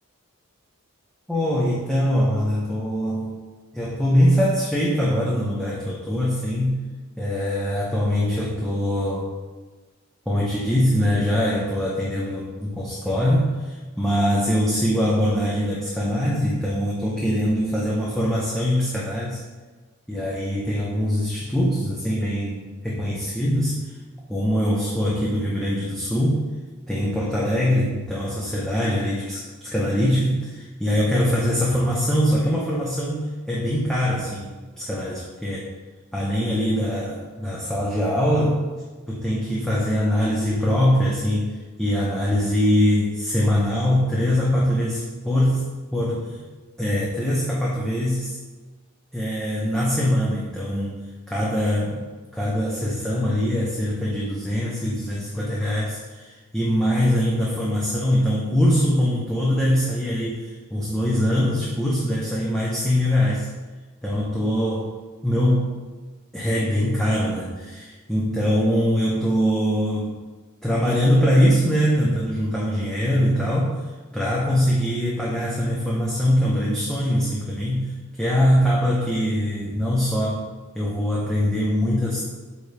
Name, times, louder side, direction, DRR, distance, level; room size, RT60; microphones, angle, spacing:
voice 1, 1.3-3.3 3.7-6.8 7.2-9.3 10.3-19.4 20.1-23.8 24.3-26.4 26.9-35.7 36.1-38.6 39.1-45.7 45.9-46.4 46.8-48.4 49.1-51.0 51.3-52.0 52.3-63.5 64.0-64.9 65.2-65.7 66.3-70.2 70.6-73.7 74.1-77.9 78.2-80.4 80.7-82.2, equal, ahead, -6 dB, 0.7 m, -22 dB
8.3 x 3.5 x 3.3 m, 1.3 s
head